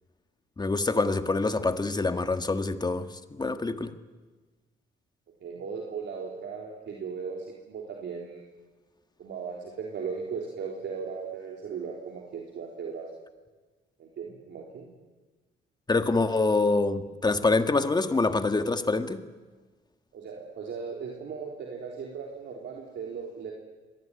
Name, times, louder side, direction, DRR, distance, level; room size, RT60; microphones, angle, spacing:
voice 1, 0.6-3.9 15.9-19.2, left 3 dB, 20° left, 8 dB, 1.7 m, -26 dB
voice 2, 5.4-8.4 9.2-13.1 14.0-14.9 20.1-23.5, right 5 dB, 65° right, 0 dB, 3.7 m, -37 dB
25.5 x 19.0 x 9.6 m, 1.3 s
cardioid pair, 90°, 20 cm